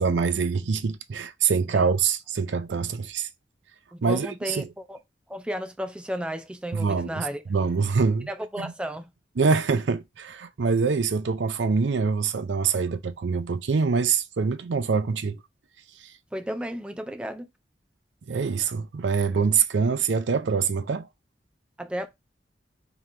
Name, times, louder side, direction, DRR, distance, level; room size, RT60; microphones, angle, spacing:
voice 1, 0.0-3.3 4.0-4.7 6.7-8.3 9.4-15.4 18.3-21.1, right 5 dB, 85° right, 0.5 m, -25 dB
voice 2, 3.9-5.0 5.3-7.4 8.3-9.1 16.3-17.5 21.8-22.1, equal, 5° right, 0.4 m, -33 dB
3.7 x 3.0 x 3.2 m
head